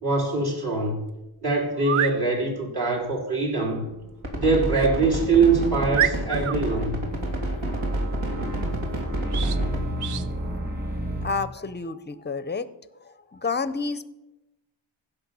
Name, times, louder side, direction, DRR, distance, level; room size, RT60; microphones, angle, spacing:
voice 1, 0.0-1.0 1.4-3.9 4.4-7.0, right 3 dB, 50° right, -2 dB, 3.5 m, -23 dB
sound 1, 0.8-0.9 1.7-2.2 4.7-4.9 5.4-5.5 5.9-6.6 9.3-9.6 10.0-10.3, right 9 dB, 90° right, 0.7 m, -27 dB
sound 2, 3.9-11.3, right 1 dB, 20° right, 2.4 m, -33 dB
sound 3, 4.2-9.8, right 1 dB, 70° right, 2.7 m, -29 dB
voice 2, 11.2-12.7 13.0-14.1, left 4 dB, 20° left, 15 dB, 0.6 m, -30 dB
15.5 x 5.6 x 6.9 m, 0.99 s
wide cardioid pair, 90°, 49 cm